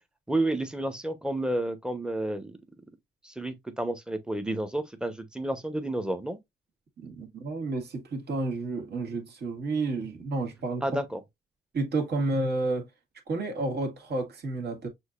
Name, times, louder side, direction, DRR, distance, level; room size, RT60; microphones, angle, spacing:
voice 1, 0.3-2.6 3.2-6.4 10.8-11.2, right 1 dB, 5° right, 0.9 m, -30 dB
voice 2, 7.0-10.8 11.7-12.9 13.3-14.9, right 2 dB, 55° right, 1.8 m, -30 dB
6.3 x 2.7 x 2.5 m
cardioid pair, 90°, 20 cm